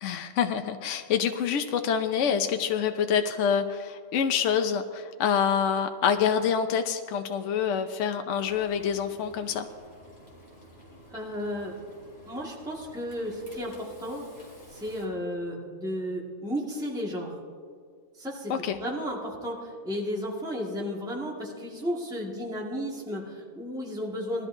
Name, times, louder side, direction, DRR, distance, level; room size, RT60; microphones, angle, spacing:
voice 1, 0.0-9.7 18.5-18.8, left 7 dB, 70° left, 6 dB, 0.9 m, -26 dB
Frying (food), 8.3-15.1, equal, 30° left, 3.7 m, -51 dB
voice 2, 11.1-11.8 12.3-14.3 14.7-17.3 18.2-24.5, equal, 5° right, -3 dB, 1.7 m, -33 dB
20.0 x 13.0 x 2.6 m, 2.1 s
omnidirectional pair, 1.4 m